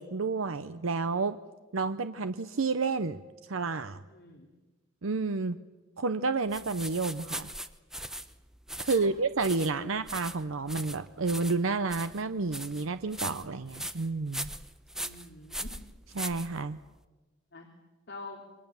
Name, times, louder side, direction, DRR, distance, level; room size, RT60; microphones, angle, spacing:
voice 1, 0.0-1.4 1.7-3.2 3.5-4.0 5.0-5.6 6.0-7.5 8.8-14.5 16.2-16.8, right 4 dB, 85° right, 11 dB, 0.7 m, -30 dB
voice 2, 4.1-4.5 8.9-9.1 9.8-9.9 15.0-15.7 17.5-17.7 18.1-18.4, left 3 dB, 55° left, 0 dB, 3.0 m, -46 dB
sound 1, 6.5-17.0, right 1 dB, ahead, 0.9 m, -40 dB
28.0 x 23.5 x 7.1 m, 1.2 s
head